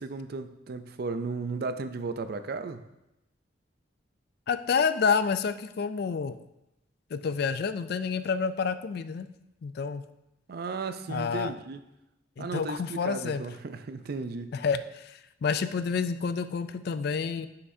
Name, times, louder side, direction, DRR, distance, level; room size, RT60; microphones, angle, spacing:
voice 1, 0.0-2.8 10.5-11.8 12.4-14.6, right 4 dB, 50° right, 10 dB, 0.4 m, -35 dB
voice 2, 4.5-6.4 7.1-9.3 9.6-10.0 11.1-11.5 12.4-13.4 14.5-17.5, left 5 dB, 55° left, 12 dB, 0.3 m, -29 dB
9.5 x 5.8 x 2.7 m, 0.90 s
head